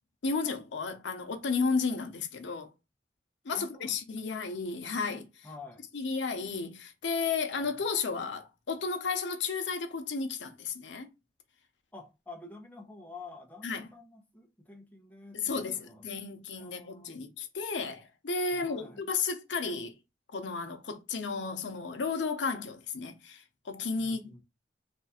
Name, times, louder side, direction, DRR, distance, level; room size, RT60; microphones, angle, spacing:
voice 1, 0.2-2.7 3.4-5.5 5.9-11.1 13.6-13.9 15.3-20.0 20.3-24.4, left 4 dB, 80° left, 0.7 m, -33 dB
voice 2, 3.5-4.0 5.4-5.9 7.6-7.7 11.9-17.2 18.5-19.1 24.0-24.4, left 3 dB, 10° left, 0.8 m, -49 dB
3.5 x 2.4 x 4.2 m
head